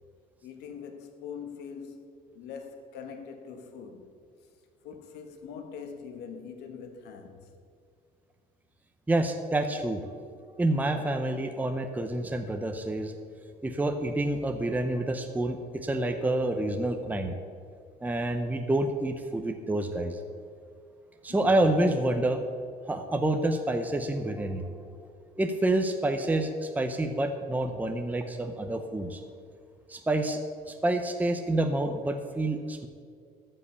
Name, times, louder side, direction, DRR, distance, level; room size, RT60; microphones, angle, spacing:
voice 1, 0.4-2.1 2.3-4.1 4.8-7.5 21.3-21.5, left 6 dB, 80° left, 1.4 m, -43 dB
voice 2, 9.1-10.2 10.5-13.1 13.6-17.3 18.0-20.2 21.2-22.4 22.9-24.9 25.4-29.2 29.9-30.4 30.7-32.9, right 1 dB, 10° right, 0.7 m, -28 dB
13.5 x 5.6 x 6.9 m
cardioid pair, 110°, 17 cm